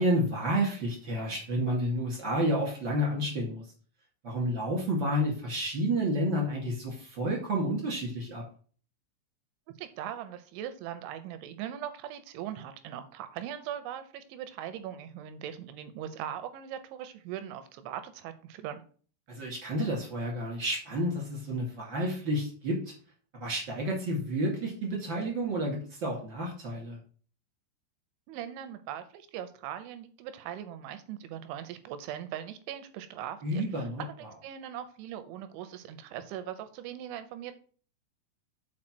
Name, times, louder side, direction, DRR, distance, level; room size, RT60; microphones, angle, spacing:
voice 1, 0.0-3.6 4.2-8.4 19.3-22.9 23.3-27.0 33.4-34.0, equal, 40° right, -1 dB, 1.8 m, -30 dB
voice 2, 9.8-18.8 28.3-37.6, right 10 dB, 80° right, 10 dB, 2.8 m, -40 dB
7.5 x 4.7 x 6.0 m, 0.43 s
omnidirectional pair, 5.8 m